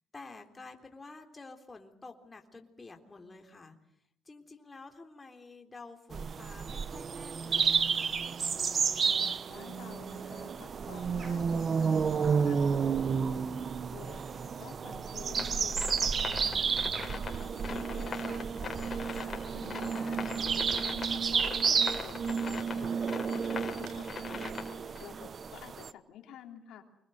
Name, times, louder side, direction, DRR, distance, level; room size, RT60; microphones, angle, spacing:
voice 1, 0.1-3.8 4.3-8.2 17.9-18.7, left 3 dB, 25° left, 4 dB, 3.6 m, -50 dB
sound 1, 6.1-25.9, right 6 dB, 50° right, 1.1 m, -31 dB
voice 2, 9.0-12.0 12.4-13.6 13.9-16.7 17.3-20.4 20.9-24.6 25.0-26.8, left 9 dB, 80° left, 4 dB, 3.3 m, -50 dB
sound 2, 15.3-25.0, left 5 dB, 40° left, 5.0 m, -41 dB
sound 3, 19.4-23.0 23.5-24.2, right 4 dB, 85° right, 7.0 m, -57 dB
26.5 x 21.0 x 7.9 m, 0.74 s
cardioid pair, 90°, 0 cm